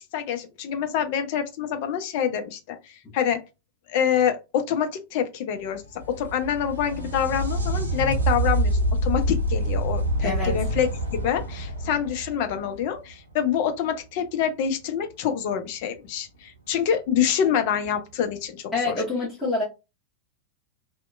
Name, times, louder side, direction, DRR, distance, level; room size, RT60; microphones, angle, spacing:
voice 1, 0.1-2.8 3.1-3.4 3.9-10.9 11.2-19.0, left 8 dB, 50° left, 0.5 m, -26 dB
sound 1, 5.7-13.3 16.7-16.8 17.9-18.0, right 1 dB, 80° right, 0.6 m, -26 dB
voice 2, 10.2-10.6 18.7-19.6, left 3 dB, 10° left, 1.1 m, -26 dB
2.8 x 2.1 x 2.3 m
figure-of-eight pair, 90°, 0 cm